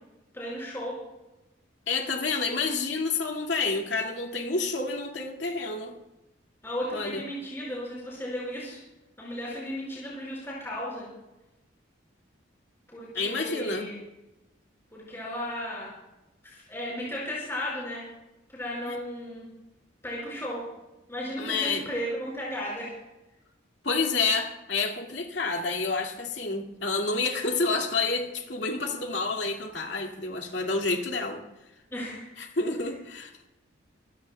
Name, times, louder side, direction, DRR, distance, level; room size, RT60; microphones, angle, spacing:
voice 1, 0.3-1.0 6.6-8.8 9.2-11.1 12.9-14.0 14.9-15.9 16.4-18.0 18.5-19.4 20.0-20.7 21.1-22.9 31.9-32.3, equal, 10° left, -6 dB, 5.6 m, -35 dB
voice 2, 1.9-6.0 6.9-7.2 13.1-13.9 18.8-19.0 21.4-21.9 23.8-31.4 32.4-33.3, left 3 dB, 65° left, 2 dB, 2.3 m, -29 dB
25.0 x 16.5 x 2.3 m, 0.98 s
head